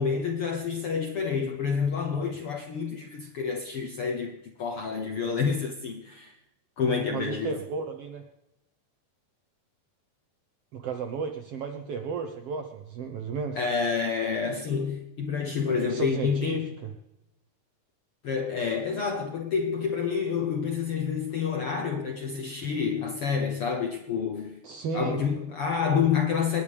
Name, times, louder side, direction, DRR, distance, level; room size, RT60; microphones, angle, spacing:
voice 1, 0.0-6.3 6.8-7.5 13.5-16.7 18.2-24.6 24.9-26.6, left 6 dB, 70° left, 4 dB, 1.3 m, -28 dB
voice 2, 7.1-8.2 10.7-13.6 15.7-16.9 24.6-25.2, right 5 dB, 70° right, 5 dB, 1.4 m, -34 dB
29.0 x 10.5 x 3.5 m, 0.92 s
omnidirectional pair, 4.1 m